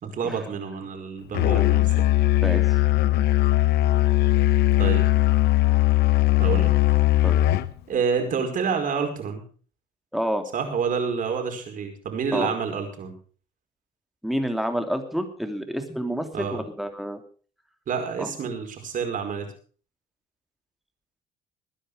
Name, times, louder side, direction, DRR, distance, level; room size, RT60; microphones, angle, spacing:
voice 1, 0.0-2.1 4.8-5.1 6.4-6.8 7.9-9.4 10.5-13.1 16.3-16.7 17.9-19.5, right 6 dB, 50° right, 4 dB, 5.1 m, -28 dB
Musical instrument, 1.3-7.7, left 15 dB, 75° left, 1.0 m, -19 dB
voice 2, 2.4-2.8 7.2-7.4 10.1-10.4 12.3-12.5 14.2-17.2 18.2-18.3, equal, ahead, 6 dB, 2.8 m, -29 dB
21.5 x 10.0 x 5.0 m, 0.41 s
cardioid pair, 110°, 17 cm